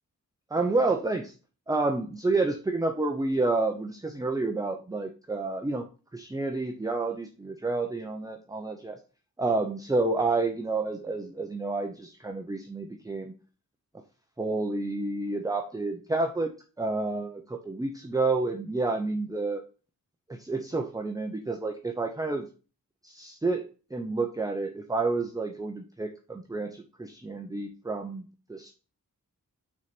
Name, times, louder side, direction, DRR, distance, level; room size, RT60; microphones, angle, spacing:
voice 1, 0.5-1.3 1.7-5.9 6.1-9.0 9.4-13.3 14.4-16.5 16.8-19.6 20.3-22.5 23.0-23.6 23.9-28.2 28.5-28.7, right 3 dB, 10° right, 4 dB, 0.6 m, -29 dB
6.1 x 4.1 x 5.9 m, 0.34 s
wide cardioid pair, 175°, 33 cm